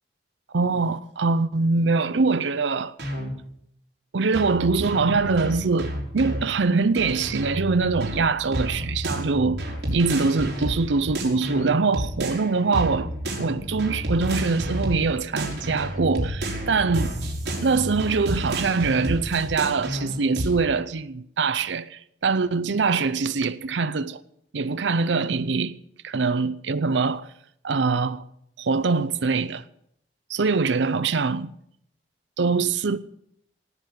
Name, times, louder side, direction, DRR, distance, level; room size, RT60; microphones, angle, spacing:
voice 1, 0.5-2.9 4.1-9.6 9.9-13.1 13.4-17.1 17.6-24.2 24.5-25.8 26.0-27.3 27.6-28.2 28.6-29.6 30.3-31.5 32.4-33.0, right 4 dB, 90° right, 0.6 m, -23 dB
sound 1, 3.0-3.3 4.3-6.4 7.0-12.5 12.7-15.1 15.4-20.5, equal, 65° right, 4.9 m, -30 dB
18.0 x 8.0 x 8.5 m
head